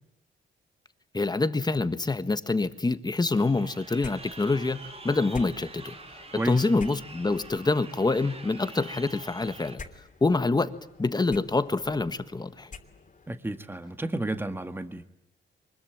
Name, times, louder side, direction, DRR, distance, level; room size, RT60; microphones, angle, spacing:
voice 1, 1.1-5.9 6.4-9.8 10.2-10.7 11.0-12.7, left 3 dB, 20° left, 1.5 m, -26 dB
Crowd, 3.3-9.7, right 3 dB, 30° right, 3.4 m, -46 dB
sound 1, 4.0-13.4, left 4 dB, 40° left, 3.1 m, -48 dB
voice 2, 13.3-15.0, right 1 dB, 10° right, 1.7 m, -31 dB
24.5 x 21.5 x 9.1 m
cardioid pair, 80°, 20 cm